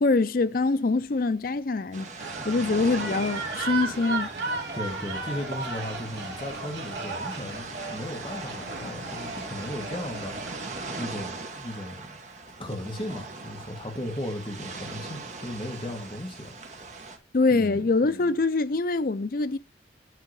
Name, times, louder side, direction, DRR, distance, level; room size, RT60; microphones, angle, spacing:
voice 1, 0.0-2.1 2.4-4.3 17.3-19.6, left 3 dB, 50° left, 0.5 m, -24 dB
sound 1, 1.9-17.2, right 3 dB, 40° right, 1.2 m, -40 dB
sound 2, 2.2-11.1, right 3 dB, 70° right, 2.7 m, -35 dB
voice 2, 4.7-10.6 11.0-12.0 12.6-16.5 17.5-17.9, left 1 dB, 30° left, 1.5 m, -36 dB
9.2 x 3.7 x 6.5 m
head